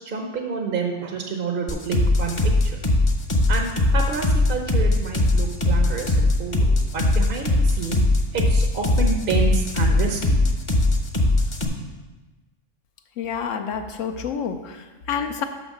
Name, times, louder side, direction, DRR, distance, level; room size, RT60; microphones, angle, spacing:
voice 1, 0.0-2.4 2.6-2.8 3.5-8.0 8.3-10.4, right 4 dB, 50° right, 3 dB, 0.8 m, -29 dB
sound 1, 1.7-11.7, left 2 dB, 30° left, 0.7 m, -19 dB
voice 2, 13.2-15.4, left 7 dB, 75° left, 6 dB, 1.0 m, -28 dB
6.4 x 5.8 x 6.4 m, 1.2 s
omnidirectional pair, 1.4 m